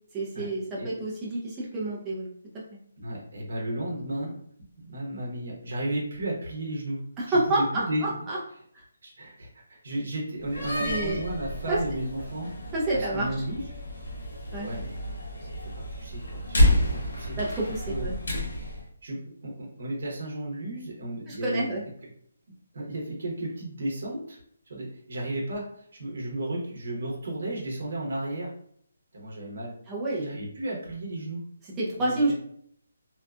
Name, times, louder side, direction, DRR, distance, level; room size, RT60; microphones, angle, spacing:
voice 1, 0.1-2.3 7.2-8.4 10.8-11.2 11.7-11.8 12.7-13.3 14.5-14.7 17.4-18.4 21.3-21.8 29.9-30.4 31.8-32.3, right 2 dB, 10° right, -6 dB, 0.4 m, -28 dB
voice 2, 3.0-4.4 4.8-7.0 7.3-8.2 9.0-13.6 14.6-17.4 17.9-18.1 18.5-18.7 19.0-21.7 22.7-24.4 24.7-28.5 29.1-29.7 30.2-31.4 32.0-32.3, right 1 dB, 50° right, -2 dB, 0.8 m, -34 dB
Slam, 10.4-18.8, left 1 dB, 70° left, 0.9 m, -29 dB
2.6 x 2.2 x 2.3 m, 0.65 s
hypercardioid pair, 180°, 0 cm